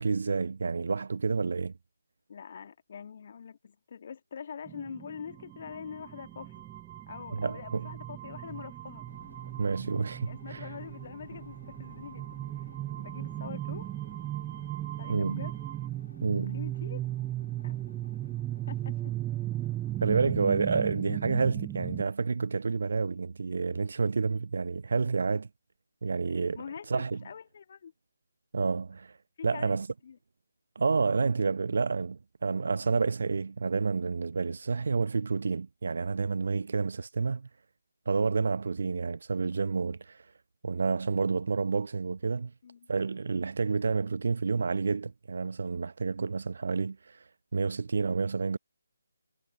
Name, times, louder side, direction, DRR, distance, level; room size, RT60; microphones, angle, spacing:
voice 1, 0.0-1.7 7.3-7.9 9.6-10.7 15.1-15.5 16.2-16.6 20.0-25.5 26.0-26.6 26.9-27.2 28.5-29.2 29.4-29.9 30.8-37.5 38.1-40.2 40.6-42.5 42.9-47.2 47.5-48.6, right 4 dB, 50° right, 0.7 m, -29 dB
voice 2, 2.3-6.6 7.1-9.1 10.3-12.7 13.0-13.9 15.0-15.6 16.5-17.1 17.6-17.8 18.7-19.1 26.6-27.9 29.4-29.8 30.0-30.2 42.6-42.9, left 7 dB, 40° left, 2.0 m, -44 dB
sound 1, 4.7-22.0, right 14 dB, 10° right, 0.3 m, -37 dB
sound 2, 4.8-15.9, right 11 dB, 30° right, 3.3 m, -49 dB
sound 3, 9.1-20.1, left 2 dB, 70° left, 1.8 m, -54 dB
figure-of-eight pair, 150°, 0 cm